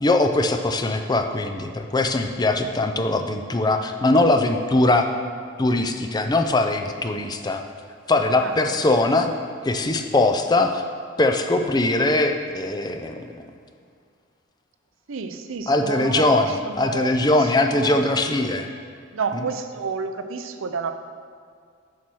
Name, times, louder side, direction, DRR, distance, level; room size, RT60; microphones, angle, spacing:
voice 1, 0.0-5.1 5.6-7.6 8.1-9.3 9.6-10.8 11.2-13.4 15.7-18.7, left 2 dB, 20° left, 6 dB, 0.5 m, -21 dB
voice 2, 8.4-8.8 15.1-18.0 19.1-21.0, right 5 dB, 85° right, 8 dB, 0.6 m, -30 dB
7.2 x 6.2 x 6.1 m, 2.2 s
head